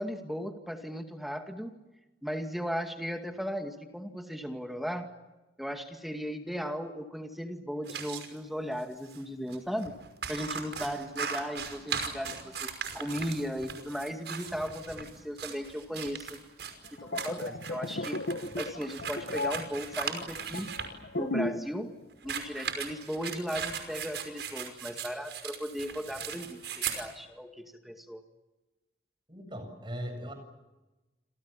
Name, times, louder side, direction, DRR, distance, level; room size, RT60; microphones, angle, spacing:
voice 1, 0.0-1.8 2.2-5.1 5.6-9.9 10.3-16.4 17.0-18.2 18.6-20.7 21.2-21.9 22.2-28.2, equal, ahead, 4 dB, 2.2 m, -36 dB
sound 1, 7.8-8.3 9.1-9.2 9.5-9.6 9.8-20.9 22.1-27.1, right 6 dB, 70° right, 5.5 m, -38 dB
sound 2, 16.8-21.8 22.0-22.3, left 2 dB, 80° left, 1.3 m, -35 dB
voice 2, 29.3-30.3, equal, 25° right, 7 dB, 7.9 m, -39 dB
30.0 x 27.5 x 7.1 m, 1.1 s
head